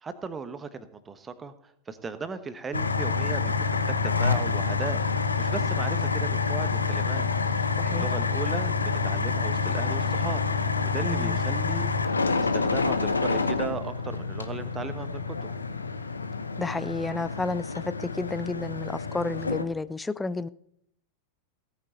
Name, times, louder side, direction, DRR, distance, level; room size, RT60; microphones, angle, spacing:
voice 1, 0.0-1.5 1.9-11.9 12.5-15.5, right 5 dB, 15° right, 1.2 m, -37 dB
sound 1, 2.7-19.6, left 4 dB, 80° left, 1.0 m, -27 dB
voice 2, 7.8-8.1 11.1-11.4 16.6-20.5, left 3 dB, 10° left, 0.5 m, -31 dB
17.0 x 8.9 x 4.3 m
figure-of-eight pair, 90°, 0 cm